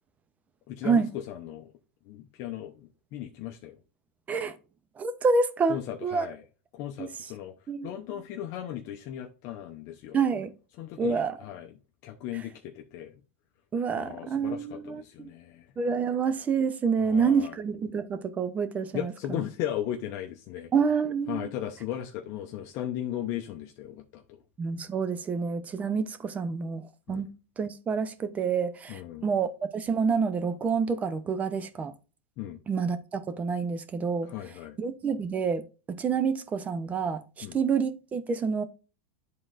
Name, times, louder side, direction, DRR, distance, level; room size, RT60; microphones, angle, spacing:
voice 1, 0.7-1.7 2.1-3.8 5.7-6.4 6.7-7.5 7.8-10.2 10.8-11.7 12.0-13.1 13.9-15.7 17.0-17.6 18.9-20.7 21.3-24.4 27.1-27.3 28.9-29.3 32.4-32.6 34.2-34.8 37.4-37.6, left 11 dB, 50° left, 0.8 m, -37 dB
voice 2, 5.0-6.3 7.0-7.1 7.7-7.9 10.1-10.5 11.0-11.4 12.3-12.4 13.7-15.3 15.8-19.4 20.7-21.5 24.6-27.3 27.6-31.9 32.7-34.3 34.8-38.6, right 5 dB, 20° right, 0.7 m, -28 dB
11.0 x 3.8 x 2.5 m
supercardioid pair, 125°, 7 cm